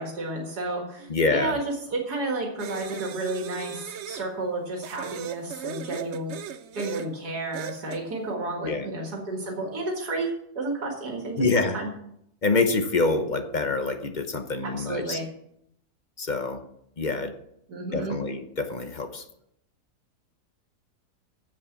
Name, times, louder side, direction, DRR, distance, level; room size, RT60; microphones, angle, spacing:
voice 1, 0.0-6.3 6.7-10.3 10.6-11.9 14.6-15.2 17.7-18.2, right 2 dB, 80° right, 1 dB, 2.4 m, -31 dB
voice 2, 1.1-1.6 8.6-8.9 11.4-11.8 12.4-15.2 16.2-16.6 17.0-17.3 17.9-19.2, left 3 dB, 35° left, 8 dB, 0.9 m, -26 dB
sound 1, 2.6-4.3 4.8-7.1 7.5-8.0, right 8 dB, 60° right, 0.7 m, -38 dB
9.7 x 7.7 x 7.2 m, 0.76 s
omnidirectional pair, 1.7 m